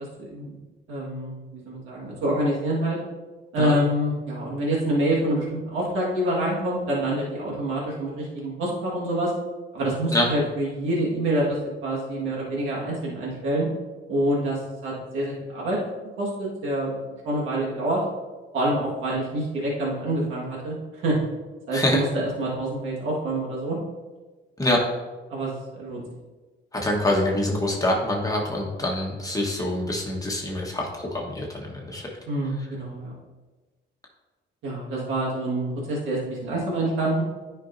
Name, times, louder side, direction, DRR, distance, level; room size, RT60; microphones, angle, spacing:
voice 1, 0.2-0.6 0.9-3.0 3.5-9.3 9.7-11.6 11.8-13.7 14.1-15.8 16.2-18.0 18.5-21.2 21.7-23.8 25.3-26.0 32.3-33.1 34.6-37.2, right 1 dB, 85° right, -4 dB, 1.7 m, -26 dB
voice 2, 26.7-32.1, left 1 dB, 15° left, -2 dB, 1.3 m, -25 dB
10.0 x 5.2 x 2.6 m, 1.2 s
cardioid pair, 90°, 20 cm